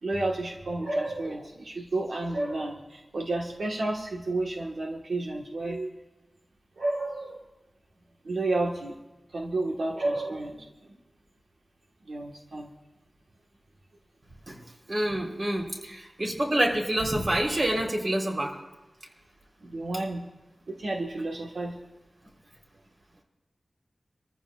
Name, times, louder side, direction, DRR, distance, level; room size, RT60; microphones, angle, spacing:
voice 1, 0.0-5.9 6.8-7.4 8.2-8.9 9.3-10.6 12.1-12.7 19.6-20.2 20.7-21.8, right 2 dB, 90° right, -1 dB, 1.5 m, -31 dB
voice 2, 14.9-18.5, right 1 dB, 45° right, -1 dB, 3.7 m, -27 dB
26.5 x 14.5 x 2.5 m, 1.1 s
wide cardioid pair, 85°, 0 cm